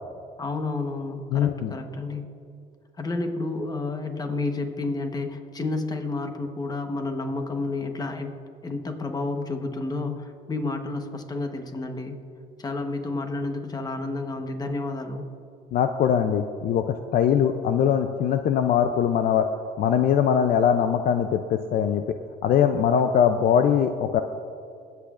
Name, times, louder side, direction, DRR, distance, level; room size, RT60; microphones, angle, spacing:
voice 1, 0.4-2.3 3.0-8.3 8.6-12.2 12.6-15.3, left 3 dB, 25° left, 5 dB, 1.1 m, -30 dB
voice 2, 1.3-1.7 15.7-19.5 19.8-22.0 22.4-24.2, left 8 dB, 60° left, 8 dB, 0.5 m, -21 dB
21.5 x 8.3 x 2.5 m, 2.4 s
cardioid pair, 110°, 17 cm